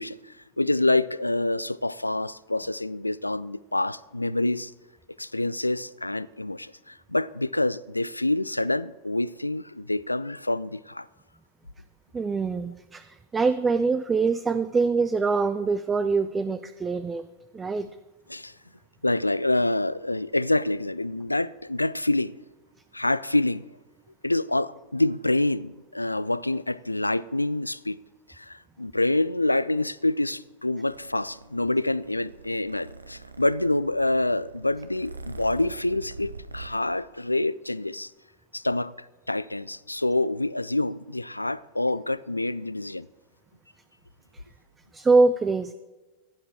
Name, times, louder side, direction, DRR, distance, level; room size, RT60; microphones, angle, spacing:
voice 1, 0.0-4.7 5.2-11.1 18.3-18.5 19.0-22.3 22.9-23.7 24.2-28.0 28.3-38.1 38.5-38.9 39.3-43.1, left 2 dB, 85° left, 0.3 m, -27 dB
voice 2, 12.1-17.3 17.5-17.9 44.9-45.7, right 4 dB, 15° right, 0.4 m, -24 dB
Purr, 30.9-36.7, right 3 dB, 80° right, 0.7 m, -44 dB
15.5 x 10.0 x 3.6 m
figure-of-eight pair, 90°, 0 cm